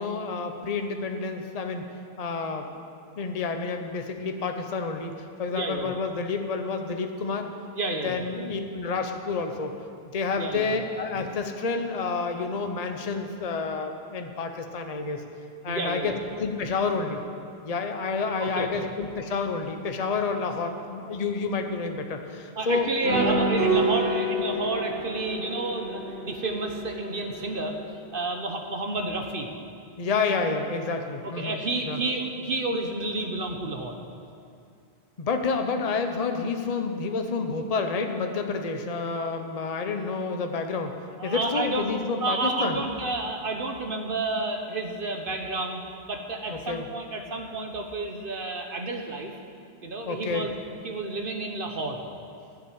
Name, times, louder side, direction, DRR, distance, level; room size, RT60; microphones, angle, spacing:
voice 1, 0.0-1.8 2.2-2.7 3.2-5.1 5.4-7.5 8.0-9.7 10.1-15.2 15.6-17.2 17.6-22.9 23.2-23.3 30.0-31.6 31.9-32.0 35.2-42.8 46.5-46.9 50.1-50.5, left 4 dB, 40° left, 5 dB, 0.9 m, -29 dB
voice 2, 5.5-5.9 7.7-8.3 10.4-10.8 15.7-16.2 18.4-18.8 22.6-27.7 28.1-29.5 31.2-34.0 41.2-41.9 42.2-49.3 49.8-50.5 50.8-52.0, right 2 dB, 55° right, 3 dB, 1.1 m, -30 dB
sound 1, 23.0-27.8, right 2 dB, 90° right, 3.0 m, -28 dB
11.5 x 7.4 x 8.8 m, 2.4 s
omnidirectional pair, 1.1 m